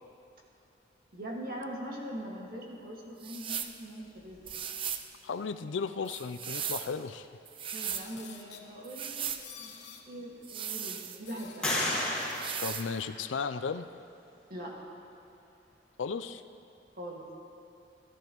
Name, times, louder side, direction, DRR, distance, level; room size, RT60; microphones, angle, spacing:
voice 1, 1.1-4.5 7.7-11.8 14.5-14.8 16.9-17.3, equal, 55° right, -2 dB, 2.0 m, -42 dB
sound 1, 3.2-3.8 4.5-5.1 6.1-6.9 7.5-8.1 8.8-9.4 10.4-11.5 12.3-12.9, right 8 dB, 30° right, 0.4 m, -37 dB
voice 2, 5.2-7.3 12.6-13.8 16.0-16.4, left 5 dB, 90° left, 11 dB, 0.4 m, -35 dB
sound 2, 7.8-8.7 9.4-10.0 11.2-12.4 12.9-13.0, left 7 dB, 65° left, 1.1 m, -50 dB
sound 3, 9.4-9.5 10.0-10.7 11.6-13.6, left 1 dB, 5° left, 1.9 m, -34 dB
14.5 x 13.5 x 3.0 m, 2.8 s
head